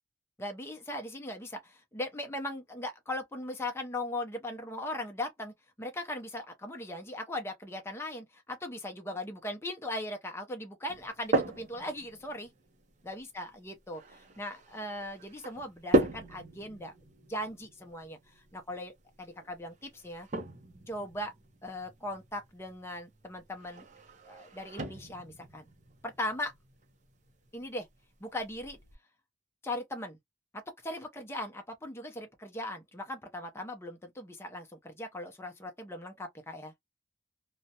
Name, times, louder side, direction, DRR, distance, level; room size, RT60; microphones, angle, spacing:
voice 1, 0.4-12.5 13.0-16.9 17.3-20.3 20.9-21.3 21.6-23.9 24.3-25.7 26.0-26.5 27.5-27.9 28.2-28.8 29.6-30.2 30.5-36.7, left 1 dB, 15° left, 0.6 m, -39 dB
sound 1, 10.9-28.9, right 1 dB, 40° right, 0.6 m, -37 dB
2.4 x 2.1 x 2.7 m
head